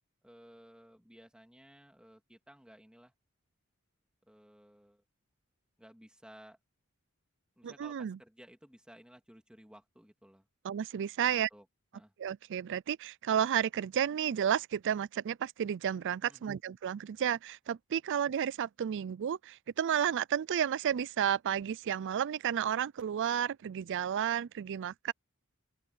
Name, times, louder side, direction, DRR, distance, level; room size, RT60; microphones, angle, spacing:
voice 1, 0.2-3.1 4.2-5.0 5.8-6.6 7.6-10.5 11.3-11.7 11.9-12.1 16.3-16.5, equal, 5° right, 2.6 m, -57 dB
voice 2, 7.6-8.2 10.6-11.5 12.2-25.1, right 9 dB, 55° right, 0.4 m, -32 dB
open air
head